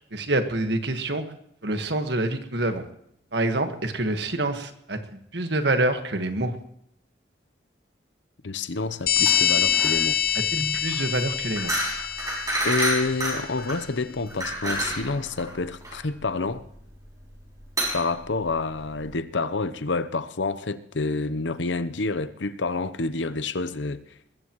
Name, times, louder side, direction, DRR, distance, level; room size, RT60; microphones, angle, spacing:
voice 1, 0.1-1.2 1.6-2.8 3.3-5.0 5.3-6.5 10.5-11.7, right 2 dB, 65° right, 1.6 m, -26 dB
voice 2, 8.4-10.2 12.6-16.6 17.9-24.0, left 3 dB, 80° left, 0.8 m, -28 dB
sound 1, 9.1-13.3, left 9 dB, 50° left, 0.8 m, -25 dB
sound 2, 9.2-19.1, right 1 dB, 20° right, 6.2 m, -30 dB
21.5 x 14.5 x 3.1 m
head